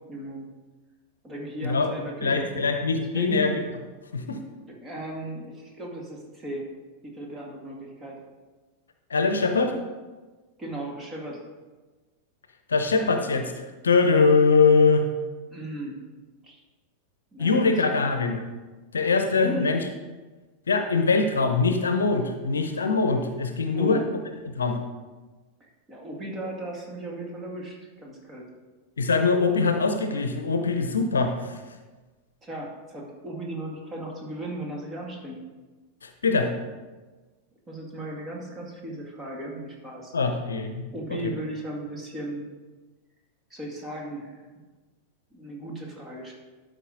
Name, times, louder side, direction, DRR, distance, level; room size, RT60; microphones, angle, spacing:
voice 1, 0.1-0.5 1.2-2.7 3.0-3.5 4.7-6.7 7.0-8.2 10.6-11.4 15.5-16.0 16.4-16.6 17.3-17.7 19.3-19.7 23.7-24.1 25.6-28.5 32.4-35.5 37.7-40.1 40.9-42.5 43.5-44.6 45.3-46.3, right 1 dB, 20° right, -1 dB, 2.1 m, -36 dB
voice 2, 1.6-1.9 2.2-3.6 4.1-4.4 9.1-9.7 12.7-15.1 17.4-18.4 18.9-19.8 20.7-24.0 24.5-24.8 29.0-31.6 36.0-36.5 40.1-41.2, left 4 dB, 70° left, 6 dB, 0.8 m, -22 dB
12.5 x 5.3 x 3.9 m, 1.3 s
figure-of-eight pair, 90°, 0 cm